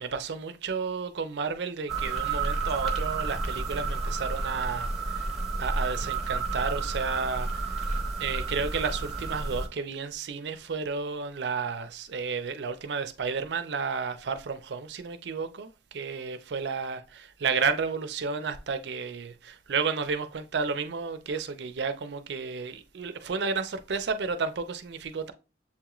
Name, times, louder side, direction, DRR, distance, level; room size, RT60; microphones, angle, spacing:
voice 1, 0.0-5.3 5.6-25.3, right 5 dB, 70° right, 0.5 m, -32 dB
sound 1, 1.9-9.7, right 3 dB, ahead, 0.9 m, -31 dB
7.1 x 3.0 x 2.4 m
head